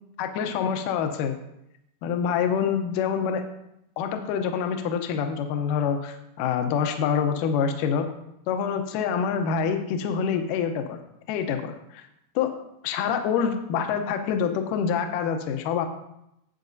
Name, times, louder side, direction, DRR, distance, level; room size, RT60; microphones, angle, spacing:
voice 1, 0.2-1.4 2.0-3.4 4.0-8.1 8.5-11.0 11.3-12.0 12.4-12.5 12.8-15.9, left 7 dB, 85° left, 6 dB, 1.9 m, -26 dB
15.0 x 7.7 x 2.7 m, 0.83 s
omnidirectional pair, 4.8 m